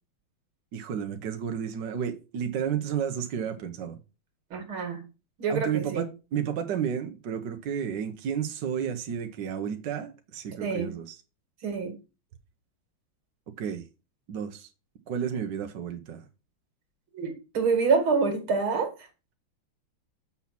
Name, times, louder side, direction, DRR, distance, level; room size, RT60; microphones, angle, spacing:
voice 1, 0.7-4.0 5.5-6.1 6.3-11.2 13.6-13.8 14.3-14.7 15.1-16.2, right 8 dB, 65° right, 1.5 m, -32 dB
voice 2, 4.5-5.0 5.4-6.0 10.6-11.0 11.6-11.9 17.1-18.9, right 5 dB, 80° right, 2.7 m, -26 dB
7.2 x 5.8 x 5.8 m
omnidirectional pair, 2.2 m